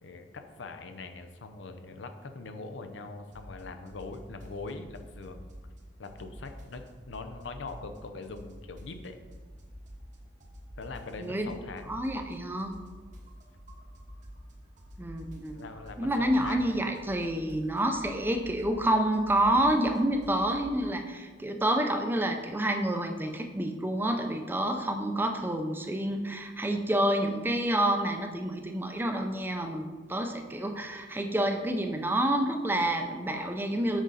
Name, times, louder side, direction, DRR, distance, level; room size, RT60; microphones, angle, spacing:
voice 1, 0.0-5.5 6.0-9.2 10.8-11.9 15.5-16.8, left 3 dB, 90° left, 7 dB, 0.6 m, -42 dB
sound 1, 3.3-3.6 3.9-5.8 6.0-8.0 8.2-10.2 10.4-14.5 14.8-20.7, equal, 45° right, 1.0 m, -48 dB
voice 2, 11.9-12.7 15.0-15.6 16.0-34.0, right 1 dB, 10° right, 5 dB, 0.5 m, -28 dB
6.3 x 5.1 x 4.0 m, 1.4 s
head